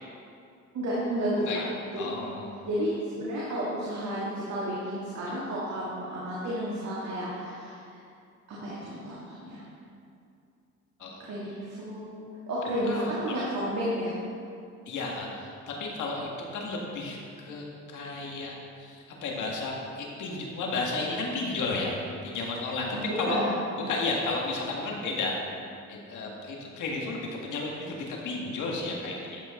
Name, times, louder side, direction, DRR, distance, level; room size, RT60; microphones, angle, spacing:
voice 1, 0.7-1.6 1.9-2.1 2.6-8.0 8.5-9.6 11.2-14.1 22.9-23.6, equal, 65° right, -7 dB, 2.3 m, -32 dB
voice 2, 2.0-2.6 11.0-11.2 12.9-13.4 14.9-23.4 23.9-25.3 25.9-29.4, left 3 dB, 80° left, -1 dB, 1.9 m, -33 dB
12.5 x 8.0 x 3.8 m, 2.5 s
cardioid pair, 90°, 30 cm